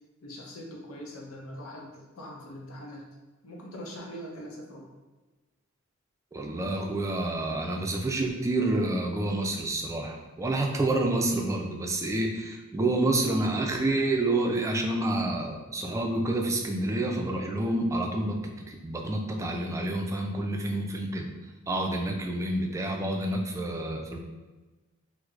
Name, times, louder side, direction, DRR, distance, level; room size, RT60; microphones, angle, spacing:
voice 1, 0.2-3.0 3.4-4.8, equal, 80° left, -1 dB, 0.7 m, -42 dB
voice 2, 6.3-21.3 21.7-24.2, right 2 dB, 15° right, 2 dB, 0.3 m, -28 dB
4.5 x 2.1 x 2.4 m, 1.2 s
head